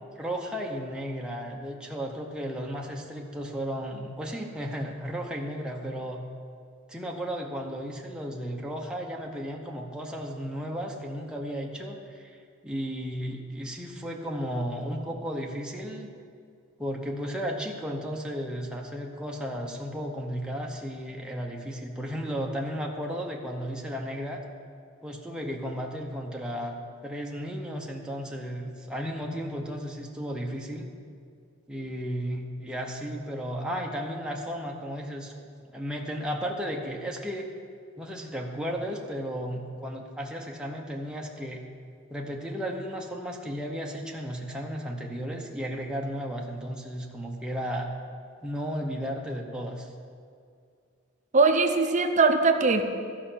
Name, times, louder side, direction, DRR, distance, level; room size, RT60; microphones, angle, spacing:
voice 1, 0.2-6.2 6.9-12.4 12.6-16.1 16.8-24.4 25.0-26.8 27.0-30.9 31.7-35.3 35.6-37.5 38.0-41.6 42.1-47.9 48.4-49.9, equal, 5° right, -1 dB, 0.8 m, -34 dB
voice 2, 51.3-52.8, right 4 dB, 35° right, 6 dB, 0.7 m, -21 dB
12.5 x 5.6 x 7.4 m, 2.3 s
head